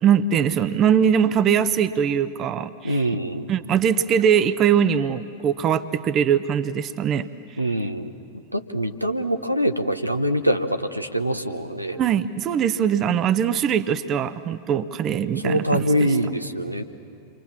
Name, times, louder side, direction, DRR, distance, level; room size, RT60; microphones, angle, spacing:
voice 1, 0.0-3.0 3.5-7.3 12.0-16.1, right 8 dB, 30° right, 13 dB, 0.8 m, -21 dB
voice 2, 2.8-3.5 7.6-8.1 8.5-12.0 15.4-16.8, equal, 90° right, 6 dB, 1.0 m, -24 dB
28.5 x 24.0 x 7.3 m, 2.4 s
figure-of-eight pair, 90°, 0 cm